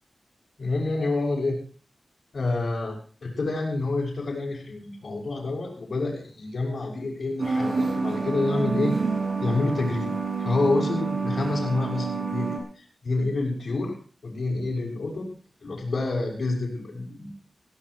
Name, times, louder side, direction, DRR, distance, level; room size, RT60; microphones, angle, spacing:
voice 1, 0.6-1.7 2.3-9.0 9.4-10.1 10.4-13.9 14.2-15.3 15.6-17.6, left 2 dB, 65° left, -6 dB, 5.8 m, -28 dB
sound 1, 7.4-12.6, right 4 dB, 80° right, 6.2 m, -28 dB
19.5 x 17.0 x 3.2 m, 0.42 s
wide cardioid pair, 100°, 0 cm